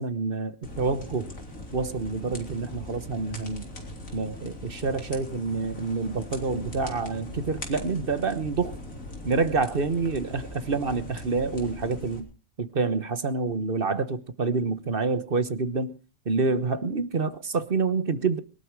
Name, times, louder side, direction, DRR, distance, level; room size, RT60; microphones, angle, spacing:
voice 1, 0.0-1.3 1.7-3.6 4.1-8.8 9.2-12.3 12.6-16.0 16.2-18.4, right 4 dB, 45° right, 1.3 m, -27 dB
sound 1, 0.6-12.2, left 1 dB, 80° left, 4.1 m, -40 dB
22.0 x 12.0 x 4.7 m
omnidirectional pair, 1.4 m